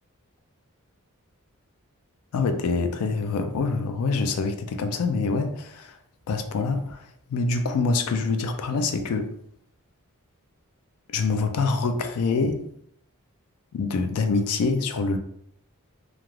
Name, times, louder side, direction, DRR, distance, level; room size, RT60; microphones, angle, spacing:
voice 1, 2.3-6.0 6.3-9.3 11.1-12.7 13.7-15.2, left 4 dB, 75° left, 0.3 m, -25 dB
3.2 x 2.4 x 2.3 m
head